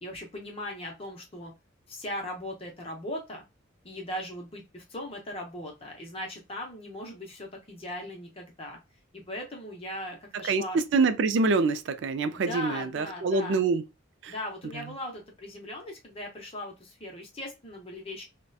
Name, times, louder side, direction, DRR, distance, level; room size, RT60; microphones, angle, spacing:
voice 1, 0.0-1.5 1.9-3.4 3.8-8.8 9.1-10.8 12.4-13.6 14.3-18.2, left 1 dB, 30° left, 0.7 m, -39 dB
voice 2, 10.4-13.9 14.2-14.3 14.7-14.9, right 4 dB, 60° right, 0.3 m, -26 dB
2.7 x 2.1 x 2.2 m
head